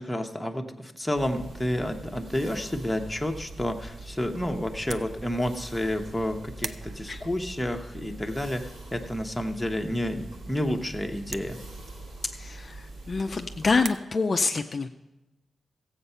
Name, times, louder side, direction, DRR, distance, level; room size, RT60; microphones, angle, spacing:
voice 1, 0.0-11.6, left 1 dB, 5° left, 4 dB, 0.8 m, -30 dB
sound 1, 1.1-13.8, right 2 dB, 80° right, 3.0 m, -43 dB
sound 2, 4.7-13.9, right 4 dB, 50° right, 0.5 m, -46 dB
voice 2, 12.3-14.9, left 4 dB, 35° left, 5 dB, 0.4 m, -27 dB
15.0 x 8.0 x 5.5 m, 0.99 s
wide cardioid pair, 150°, 0 cm